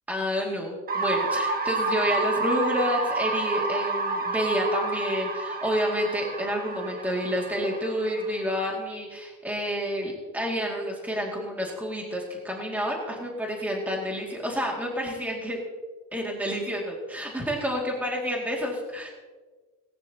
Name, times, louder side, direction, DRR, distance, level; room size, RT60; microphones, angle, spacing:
voice 1, 0.1-15.6 16.1-19.1, equal, 5° right, -2 dB, 2.3 m, -29 dB
sound 1, 0.9-8.7, right 3 dB, 25° right, 1.5 m, -29 dB
19.0 x 18.0 x 2.9 m, 1.3 s
cardioid pair, 160°, 34 cm